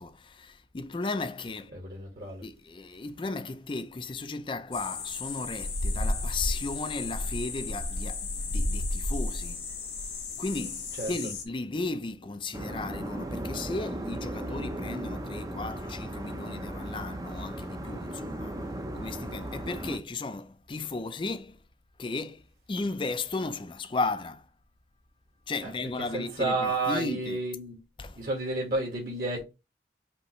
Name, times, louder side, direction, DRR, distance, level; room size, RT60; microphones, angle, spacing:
voice 1, 0.0-1.8 2.4-9.6 10.4-18.6 18.9-21.6 22.0-22.4 22.7-24.5 25.5-27.4 28.0-28.2, left 3 dB, 25° left, 0.4 m, -35 dB
voice 2, 1.7-2.4 10.9-11.1 25.6-25.7 26.1-27.8 28.2-29.5, right 2 dB, 55° right, 1.8 m, -31 dB
sound 1, 4.7-11.4, left 2 dB, 85° left, 1.8 m, -32 dB
sound 2, 12.5-20.0, right 1 dB, 20° right, 0.6 m, -36 dB
5.4 x 2.9 x 3.0 m
head